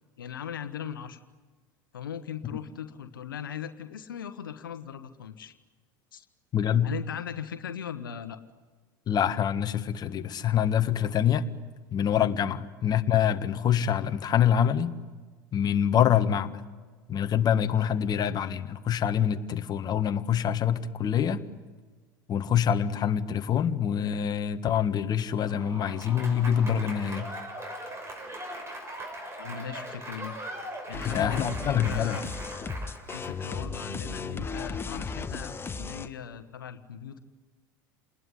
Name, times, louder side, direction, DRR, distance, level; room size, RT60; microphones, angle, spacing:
voice 1, 0.2-1.2 1.9-5.5 6.1-6.3 6.8-8.4 12.4-12.6 28.9-29.0 29.4-30.4 30.9-32.3 33.1-37.2, left 8 dB, 85° left, 10 dB, 1.3 m, -39 dB
voice 2, 6.5-6.9 9.1-11.5 11.9-15.0 15.5-16.5 17.1-21.4 22.3-27.3 31.1-32.2, left 9 dB, 40° left, 9 dB, 1.5 m, -25 dB
Applause / Crowd, 25.3-33.5, right 1 dB, 25° right, 6.3 m, -40 dB
sound 1, 30.9-36.1, left 4 dB, 20° left, 1.6 m, -35 dB
29.0 x 20.0 x 9.8 m, 1.4 s
hypercardioid pair, 80°, 11 cm